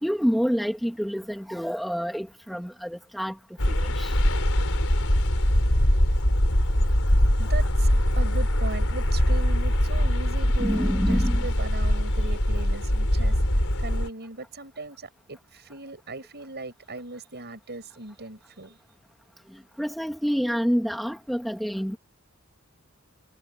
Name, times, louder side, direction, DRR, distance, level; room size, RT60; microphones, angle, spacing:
voice 1, 0.0-3.4 3.7-4.2 10.6-11.5 19.8-22.0, equal, ahead, 2.1 m, -27 dB
sound 1, 3.6-14.1, equal, 65° left, 5.4 m, -22 dB
voice 2, 7.4-7.9 8.2-13.3 13.8-18.8, right 2 dB, 50° right, 7.8 m, -38 dB
head